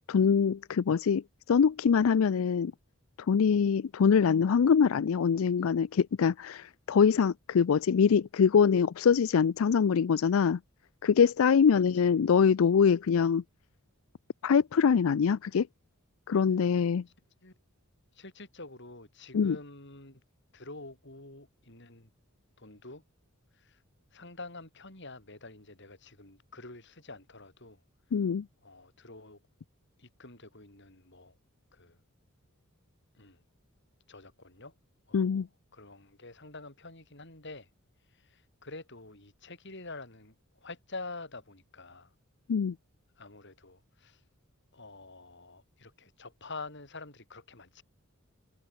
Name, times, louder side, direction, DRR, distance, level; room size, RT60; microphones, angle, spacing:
voice 1, 0.1-2.7 3.3-10.6 11.0-13.4 14.4-15.7 16.3-17.0 19.3-19.6 28.1-28.5 35.1-35.5 42.5-42.7, left 6 dB, 70° left, 0.4 m, -24 dB
voice 2, 11.7-12.1 17.4-17.5 18.1-20.2 20.5-22.1 22.6-23.0 23.5-23.8 24.1-27.8 28.6-29.4 30.0-31.4 31.7-32.0 33.1-33.4 34.1-34.7 35.1-35.5 35.7-37.7 38.1-42.1 43.2-44.2 44.7-47.8, left 3 dB, 55° left, 7.4 m, -47 dB
head